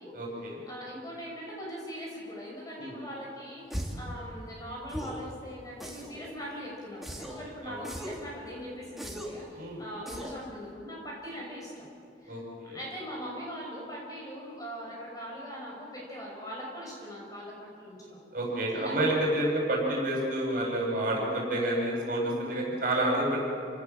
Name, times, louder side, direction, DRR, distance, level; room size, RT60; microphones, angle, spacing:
voice 1, 0.1-0.6 2.8-2.9 7.6-7.8 9.5-9.8 12.3-12.8 18.3-23.5, right 1 dB, 45° right, -2 dB, 7.6 m, -29 dB
voice 2, 0.7-11.9 12.2-18.2 18.7-18.9, equal, 20° left, -3 dB, 6.6 m, -41 dB
sound 1, 3.7-4.1 4.9-5.3 5.8-6.3 7.0-7.5 7.8-8.3 9.0-9.5 10.1-10.4, equal, ahead, 2.5 m, -38 dB
29.0 x 18.5 x 7.5 m, 2.5 s
head